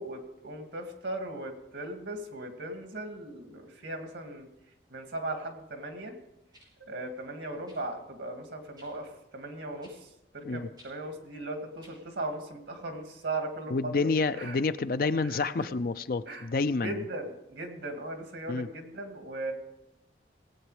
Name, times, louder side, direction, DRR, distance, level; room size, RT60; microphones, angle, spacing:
voice 1, 0.0-4.5 4.9-6.1 6.8-14.6 15.2-15.7 16.3-16.5 16.8-19.5, right 2 dB, 85° right, 5 dB, 2.2 m, -38 dB
sound 1, 5.4-5.5 6.5-6.7 7.7-7.8 8.8-8.9 9.8-10.0 10.7-10.9 11.8-12.0 12.9-13.0, equal, 20° right, 6.0 m, -56 dB
voice 2, 13.7-17.0 18.5-18.7, left 3 dB, 50° left, 12 dB, 0.5 m, -29 dB
19.0 x 8.4 x 4.9 m, 0.94 s
head